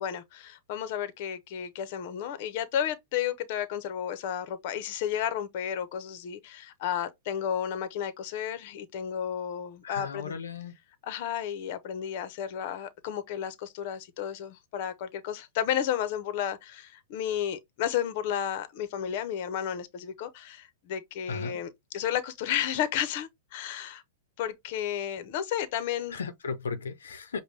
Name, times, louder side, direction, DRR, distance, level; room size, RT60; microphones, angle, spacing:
voice 1, 0.0-10.4 11.0-24.0 24.4-26.2, left 9 dB, 50° left, 0.7 m, -32 dB
voice 2, 9.8-10.7 21.3-21.6 26.1-27.4, left 5 dB, 90° left, 0.6 m, -36 dB
5.1 x 2.2 x 3.2 m
hypercardioid pair, 135°, 0 cm